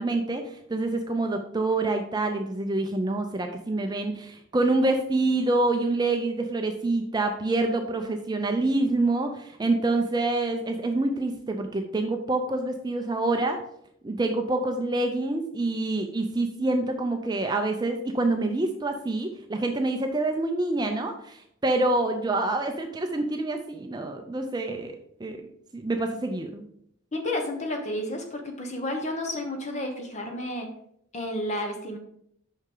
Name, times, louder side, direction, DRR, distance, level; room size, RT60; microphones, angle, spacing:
voice 1, 0.0-13.6 14.0-25.4 25.7-26.6, right 2 dB, 20° right, 5 dB, 0.4 m, -26 dB
voice 2, 27.1-30.7 31.1-32.0, left 1 dB, 30° left, 3 dB, 1.0 m, -31 dB
6.0 x 5.6 x 3.8 m, 0.70 s
head